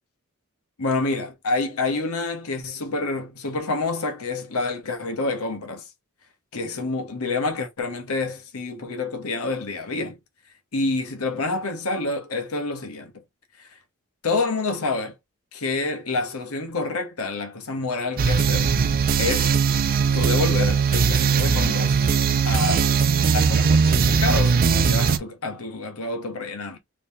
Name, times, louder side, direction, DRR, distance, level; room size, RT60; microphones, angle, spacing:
voice 1, 0.8-5.8 6.5-10.2 10.7-13.1 14.2-15.1 15.5-18.7 19.2-19.5 20.1-22.0 22.4-22.9 23.3-26.8, left 3 dB, 80° left, 1.0 m, -28 dB
sound 1, 18.2-25.2, right 5 dB, 40° right, 0.4 m, -20 dB
3.1 x 2.8 x 3.3 m
head